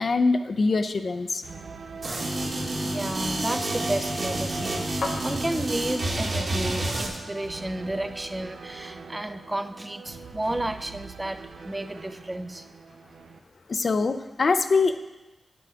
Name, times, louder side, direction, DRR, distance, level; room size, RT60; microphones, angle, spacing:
voice 1, 0.0-1.4 13.7-15.1, left 4 dB, 55° left, 10 dB, 0.5 m, -23 dB
sound 1, 1.4-13.4, right 5 dB, 70° right, 0.6 m, -43 dB
sound 2, 2.0-7.8, left 3 dB, 80° left, 1.2 m, -42 dB
sound 3, 2.0-7.1, right 1 dB, 55° right, 1.7 m, -29 dB
voice 2, 2.8-12.7, right 1 dB, 15° right, 10 dB, 0.4 m, -32 dB
8.0 x 7.7 x 4.9 m, 1.1 s
wide cardioid pair, 85°, 0 cm